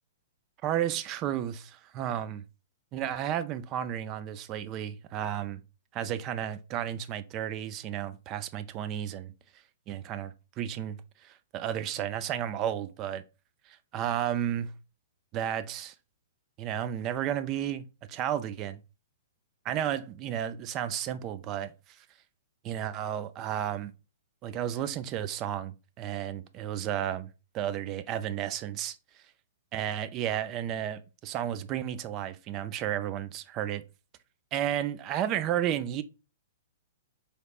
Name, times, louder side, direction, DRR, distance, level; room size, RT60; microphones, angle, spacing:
voice 1, 0.6-2.4 2.9-5.6 5.9-9.3 9.9-13.2 13.9-14.7 15.3-15.9 16.6-18.8 19.6-21.7 22.6-23.9 24.4-27.3 27.5-28.9 29.7-33.8 34.5-36.0, right 10 dB, 35° right, 0.4 m, -32 dB
4.0 x 3.3 x 2.4 m
figure-of-eight pair, 115°, 0 cm